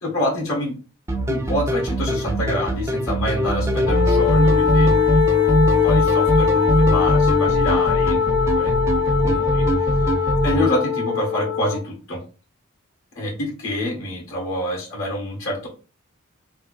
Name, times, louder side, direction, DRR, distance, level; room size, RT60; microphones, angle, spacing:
voice 1, 0.0-0.7 1.3-5.4 5.8-9.7 9.9-10.0 10.4-12.2 13.1-15.7, left 1 dB, 75° left, -3 dB, 1.6 m, -27 dB
sound 1, 1.1-10.7, right 1 dB, 15° right, 0.4 m, -21 dB
Wind instrument woodwind instrument, 3.8-11.8, left 8 dB, 50° left, 0.5 m, -21 dB
3.4 x 2.6 x 3.2 m, 0.36 s
head